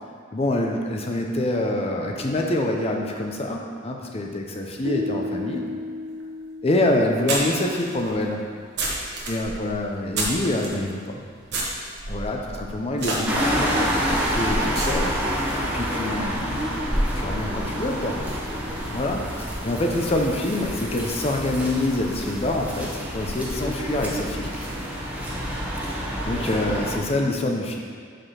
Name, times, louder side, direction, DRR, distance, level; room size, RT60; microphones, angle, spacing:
voice 1, 0.3-5.6 6.6-8.4 9.3-11.2 12.1-15.1 15.6-18.2 18.9-24.5 25.9-27.8, left 1 dB, 30° left, 1 dB, 0.6 m, -26 dB
sound 1, 4.8-8.0, left 2 dB, 80° right, 0.5 m, -34 dB
sound 2, 6.2-6.3 7.3-10.8 11.5-15.4, right 2 dB, 60° right, 1.2 m, -31 dB
sound 3, 13.3-27.0, equal, 5° right, 0.9 m, -27 dB
5.0 x 4.9 x 5.7 m, 2.1 s
head